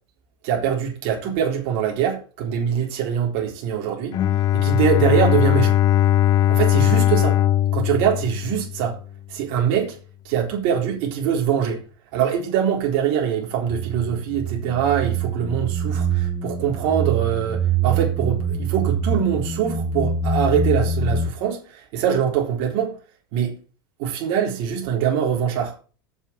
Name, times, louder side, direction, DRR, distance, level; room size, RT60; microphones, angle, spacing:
voice 1, 0.4-4.2 4.5-5.8 6.5-7.4 7.7-9.0 9.3-10.0 10.2-11.8 12.1-23.0 23.3-23.6 24.0-25.7, right 8 dB, 60° right, 3.9 m, -23 dB
Bowed string instrument, 4.1-9.0, left 11 dB, 35° left, 0.5 m, -19 dB
sound 1, 13.7-21.3, right 4 dB, 20° left, 1.8 m, -24 dB
7.4 x 7.1 x 7.5 m
hypercardioid pair, 100°, 11 cm